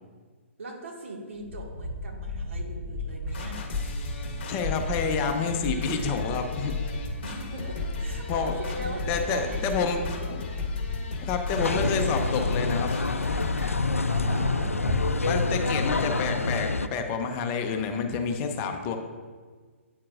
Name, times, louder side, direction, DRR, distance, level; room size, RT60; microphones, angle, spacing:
voice 1, 0.6-3.6 7.2-10.7 14.1-14.8, right 1 dB, 70° right, 0 dB, 1.7 m, -40 dB
sound 1, 1.3-16.0, left 1 dB, 20° right, 1.9 m, -35 dB
sound 2, 3.3-13.7, left 4 dB, 45° left, 1.3 m, -35 dB
voice 2, 4.5-6.7 8.3-8.5 9.1-10.0 10.3-10.4 11.2-12.9 15.3-19.0, left 5 dB, 30° left, 5 dB, 0.7 m, -29 dB
sound 3, 11.6-16.9, left 3 dB, 90° left, 0.4 m, -27 dB
8.9 x 8.6 x 2.5 m, 1.5 s
figure-of-eight pair, 125°, 7 cm